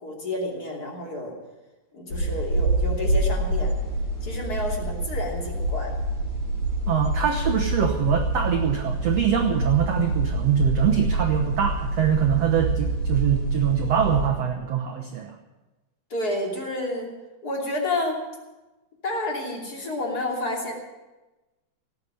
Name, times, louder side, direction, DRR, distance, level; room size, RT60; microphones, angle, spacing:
voice 1, 0.0-1.3 1.9-3.7 4.2-5.9 16.1-17.2 17.4-18.2 19.0-20.7, left 1 dB, 25° left, -1 dB, 2.9 m, -30 dB
sound 1, 2.1-14.3, right 2 dB, 50° left, 6.5 m, -26 dB
voice 2, 6.9-15.3, right 8 dB, 80° right, 3 dB, 1.4 m, -23 dB
18.0 x 8.3 x 9.3 m, 1.1 s
omnidirectional pair, 4.5 m